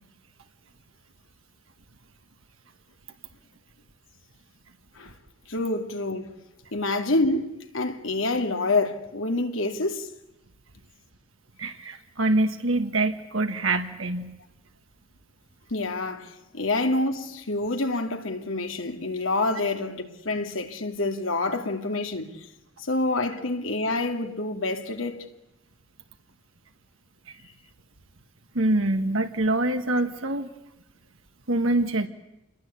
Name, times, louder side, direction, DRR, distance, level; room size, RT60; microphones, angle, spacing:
voice 1, 5.5-6.3 6.7-10.1 15.7-22.3 22.8-25.2, left 2 dB, 85° left, 2.5 m, -27 dB
voice 2, 11.6-14.3 28.5-30.5 31.5-32.1, right 2 dB, 85° right, 1.7 m, -25 dB
29.0 x 21.5 x 8.4 m
head